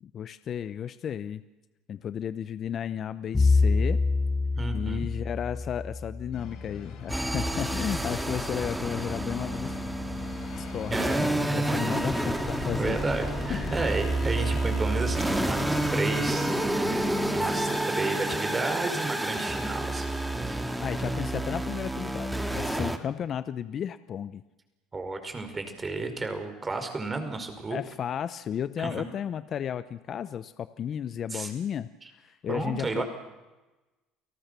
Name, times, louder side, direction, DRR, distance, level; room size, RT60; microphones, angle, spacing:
voice 1, 0.0-1.4 1.9-4.0 4.7-9.7 10.6-13.0 13.5-13.9 20.8-24.4 27.7-31.9 32.2-33.0, left 9 dB, 45° left, 13 dB, 0.9 m, -33 dB
Bowed string instrument, 3.3-7.5, left 3 dB, 20° left, 1.2 m, -27 dB
voice 2, 4.6-5.1 10.9-11.9 12.8-20.1 20.3-20.8 24.9-27.8 28.8-28.9 31.3-31.5 32.0-32.1 32.5-33.0, right 3 dB, 25° right, 7 dB, 5.2 m, -32 dB
sound 1, 6.3-17.8, left 8 dB, 65° left, 6.0 m, -41 dB
sound 2, 7.1-23.0, right 1 dB, 5° right, 2.4 m, -29 dB
29.5 x 18.5 x 6.9 m, 1.1 s
supercardioid pair, 95°, 0 cm